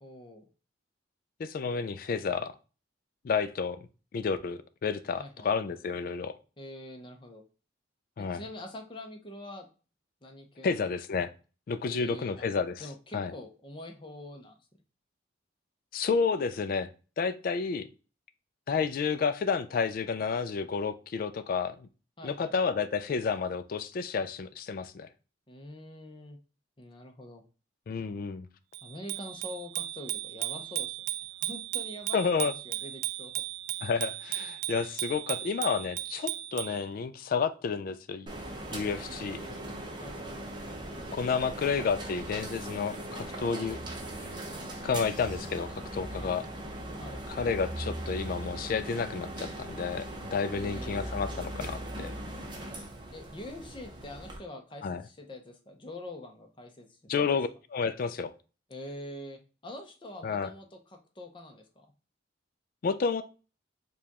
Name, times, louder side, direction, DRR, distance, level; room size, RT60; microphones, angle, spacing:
voice 1, 0.0-0.5 5.2-5.5 6.6-7.4 8.2-9.7 10.2-10.8 11.9-12.4 12.8-14.6 22.2-22.5 25.5-26.4 26.8-27.4 28.8-31.0 31.4-32.2 32.6-33.4 39.2-39.7 40.0-40.3 46.2-46.4 47.0-47.2 50.5-51.1 53.1-56.9 57.1-57.2 58.7-61.9, left 1 dB, 25° left, 4 dB, 0.7 m, -45 dB
voice 2, 1.4-2.5 3.2-3.8 4.1-6.3 8.2-8.4 10.6-11.3 11.7-12.8 13.1-13.3 15.9-16.9 17.2-17.9 18.7-21.9 22.2-25.1 27.9-28.5 32.1-32.5 33.8-38.3 38.7-39.4 41.1-43.8 44.8-46.4 47.3-52.1 54.8-55.0 57.1-58.3 60.2-60.5 62.8-63.2, left 5 dB, 50° left, 11 dB, 0.3 m, -30 dB
Bicycle bell, 28.7-36.8, right 15 dB, 70° right, 0.3 m, -36 dB
sound 1, 38.3-54.4, right 1 dB, 25° right, 0.6 m, -39 dB
4.9 x 2.3 x 2.8 m, 0.34 s
head